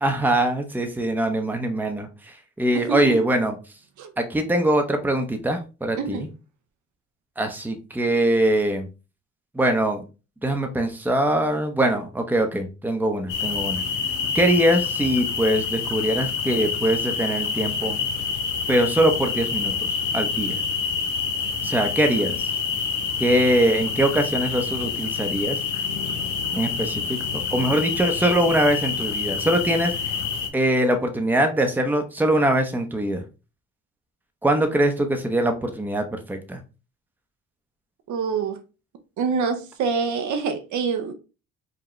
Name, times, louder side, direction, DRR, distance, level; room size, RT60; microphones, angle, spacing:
voice 1, 0.0-3.5 4.2-6.3 7.4-8.9 9.5-10.0 10.4-13.8 14.3-18.0 18.7-20.6 21.6-22.5 23.2-25.6 26.5-29.9 30.5-33.2 34.4-36.6, right 1 dB, 5° right, 0.7 m, -22 dB
voice 2, 2.7-3.2 4.0-4.1 6.0-6.2 38.1-38.6 39.2-41.1, right 5 dB, 75° right, 0.8 m, -26 dB
sound 1, 13.3-30.5, left 6 dB, 85° left, 0.8 m, -27 dB
4.9 x 2.2 x 3.0 m
cardioid pair, 90°, 30 cm